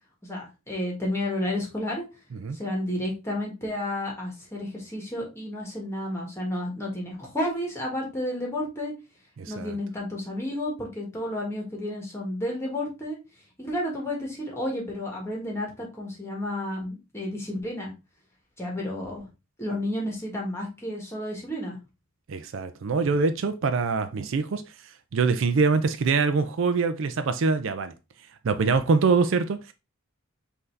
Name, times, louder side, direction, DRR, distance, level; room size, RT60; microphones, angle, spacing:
voice 1, 0.2-2.0 2.5-8.9 9.5-13.2 13.6-17.9 18.6-19.3 19.6-21.8, left 1 dB, 10° left, 1.4 m, -31 dB
voice 2, 9.4-9.8 22.3-24.6 25.1-27.9 28.4-29.7, right 4 dB, 60° right, 0.4 m, -24 dB
5.7 x 2.7 x 3.2 m
head